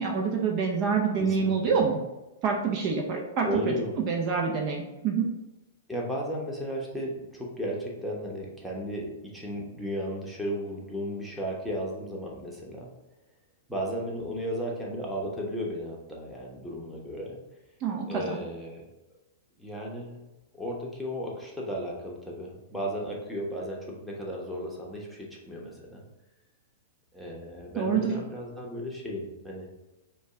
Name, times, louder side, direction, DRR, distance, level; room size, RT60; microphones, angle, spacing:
voice 1, 0.0-2.0 2.4-3.5 4.1-5.3 17.8-18.4 27.8-28.1, right 5 dB, 40° right, 1 dB, 0.6 m, -26 dB
voice 2, 1.2-1.7 3.4-3.9 5.9-12.9 13.7-17.4 18.1-18.8 19.6-20.2 20.5-26.0 27.1-29.7, equal, ahead, -4 dB, 1.1 m, -35 dB
5.2 x 2.3 x 3.7 m, 1.0 s
hypercardioid pair, 110°, 0 cm